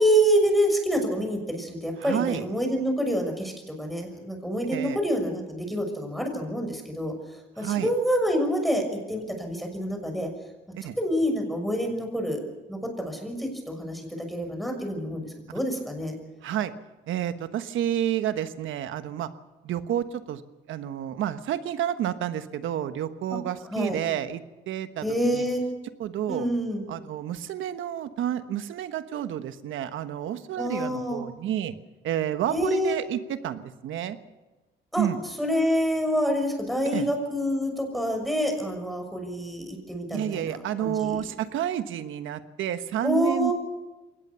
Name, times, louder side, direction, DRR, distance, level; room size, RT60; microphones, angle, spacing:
voice 1, 0.0-7.1 7.6-10.3 11.0-12.4 12.7-16.2 23.7-24.0 25.0-25.6 26.3-26.8 30.6-31.2 32.5-32.9 34.9-35.1 35.4-41.2 43.0-43.5, equal, ahead, 3 dB, 6.2 m, -27 dB
voice 2, 2.0-2.4 4.7-5.0 7.6-7.9 10.7-11.0 16.4-16.7 17.1-19.3 19.6-20.4 20.7-25.1 25.3-25.4 26.0-26.5 26.9-31.7 32.0-34.2 35.0-35.2 36.9-37.1 40.1-43.5, right 11 dB, 80° right, 11 dB, 1.3 m, -30 dB
22.5 x 19.0 x 7.0 m, 1.1 s
cardioid pair, 90°, 20 cm